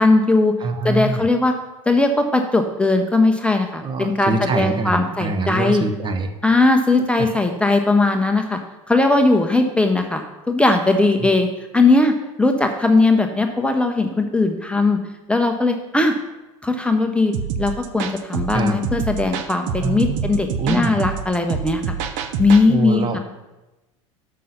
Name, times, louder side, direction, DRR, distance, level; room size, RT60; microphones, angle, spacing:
voice 1, 0.0-0.5 0.8-1.5 1.9-5.8 6.4-8.6 8.9-11.5 11.7-15.0 15.3-16.1 16.6-21.9 22.4-23.2, left 3 dB, 5° left, 4 dB, 0.6 m, -18 dB
voice 2, 0.6-1.3 3.8-6.3 7.2-7.3 11.2-11.3 18.5-18.8 19.8-21.0 22.7-23.2, right 3 dB, 30° right, 7 dB, 0.8 m, -24 dB
sound 1, 17.3-22.7, right 7 dB, 60° right, 0.7 m, -27 dB
6.5 x 5.5 x 5.5 m, 1.0 s
hypercardioid pair, 90°, 17 cm